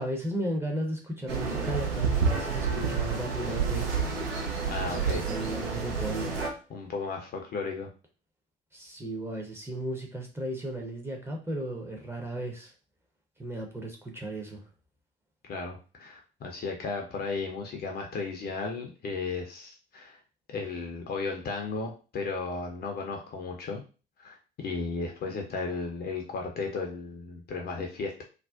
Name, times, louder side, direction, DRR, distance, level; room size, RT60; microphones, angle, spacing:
voice 1, 0.0-3.9 4.9-6.3 8.7-12.7 13.4-14.6, right 1 dB, 10° right, 0 dB, 0.6 m, -35 dB
sound 1, 1.3-6.5, right 5 dB, 80° right, 0.6 m, -29 dB
voice 2, 4.7-5.2 6.7-7.9 15.4-20.2 20.5-23.8 24.2-28.2, left 4 dB, 35° left, 2 dB, 0.5 m, -35 dB
2.5 x 2.1 x 2.3 m, 0.34 s
figure-of-eight pair, 60°, 30 cm